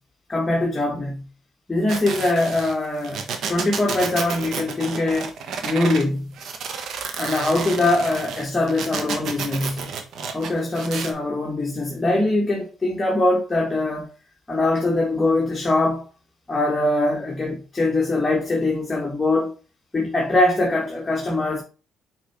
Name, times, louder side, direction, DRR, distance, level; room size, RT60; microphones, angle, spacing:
voice 1, 0.3-1.2 1.7-5.3 5.6-6.3 7.2-9.9 10.3-14.1 14.5-16.1 16.5-19.5 19.9-21.6, left 2 dB, 20° left, 1.5 m, -22 dB
sound 1, 1.9-6.0 6.3-11.1, right 5 dB, 70° right, 1.0 m, -31 dB
6.1 x 4.5 x 3.4 m
cardioid pair, 90°, 0 cm